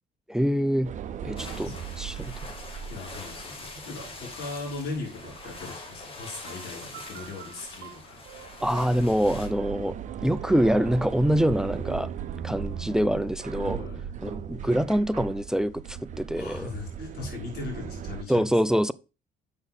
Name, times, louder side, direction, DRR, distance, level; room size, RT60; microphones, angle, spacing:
voice 1, 0.3-1.0 1.2-1.7 2.0-2.3 8.6-10.0 10.2-12.1 12.4-13.8 14.2-16.7 18.3-18.9, equal, 5° right, 0.3 m, -25 dB
sound 1, 0.8-18.2, right 8 dB, 45° right, 0.7 m, -38 dB
voice 2, 1.2-1.8 2.9-8.3 13.8-14.0 16.3-18.5, left 3 dB, 65° left, 5.0 m, -39 dB
sound 2, 1.4-9.5, left 3 dB, 35° left, 2.0 m, -43 dB
sound 3, 6.5-13.5, right 14 dB, 80° right, 0.7 m, -46 dB
7.0 x 6.2 x 3.6 m
cardioid pair, 110°, 17 cm